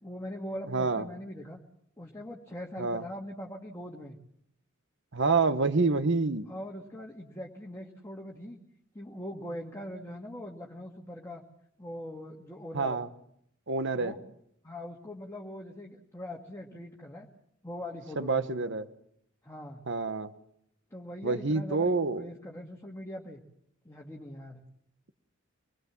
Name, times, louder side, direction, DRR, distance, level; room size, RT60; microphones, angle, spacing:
voice 1, 0.0-1.6 2.0-4.2 6.5-8.6 8.9-11.4 11.8-13.0 13.9-14.2 14.6-17.3 17.6-18.5 19.4-19.8 20.9-23.4 23.8-24.6, left 1 dB, 15° left, 0 dB, 2.0 m, -41 dB
voice 2, 0.7-1.1 2.8-3.0 5.1-6.4 12.7-13.1 13.7-14.1 18.2-18.9 19.9-20.3 21.2-22.2, right 3 dB, 60° right, 11 dB, 1.3 m, -27 dB
25.5 x 20.0 x 7.4 m, 0.73 s
head